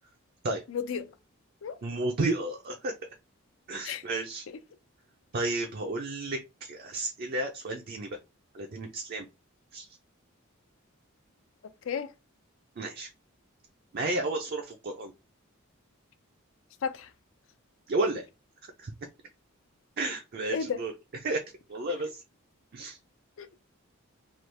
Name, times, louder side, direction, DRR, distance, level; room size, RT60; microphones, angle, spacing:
voice 1, 0.7-1.1 1.6-1.8 3.8-4.0 11.8-12.1 16.8-17.1 20.5-20.8 21.9-22.1 23.4-23.6, left 6 dB, 65° left, 0.4 m, -33 dB
voice 2, 1.8-2.9 3.7-4.4 5.3-8.2 8.5-9.3 9.7-9.8 12.8-13.1 13.9-15.1 17.9-18.2 18.8-18.9 20.0-20.9 21.2-21.4 21.7-22.2 22.7-23.0, right 2 dB, 45° right, 0.4 m, -32 dB
3.0 x 2.3 x 3.2 m
head